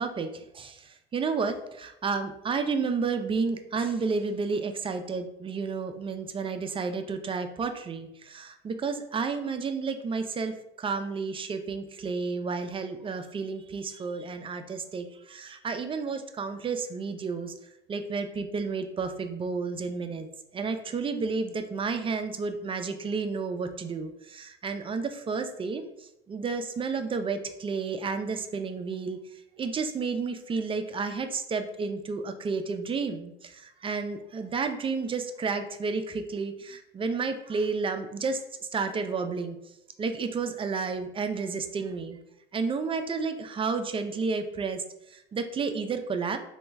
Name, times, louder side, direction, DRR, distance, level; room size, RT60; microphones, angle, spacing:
voice 1, 0.0-17.5 17.9-20.3 20.5-25.9 26.3-29.2 29.6-38.4 38.7-39.6 40.0-42.2 42.5-44.8 45.1-46.4, right 4 dB, 20° right, 7 dB, 0.3 m, -31 dB
2.9 x 2.3 x 3.3 m, 0.83 s
hypercardioid pair, 75°, 29 cm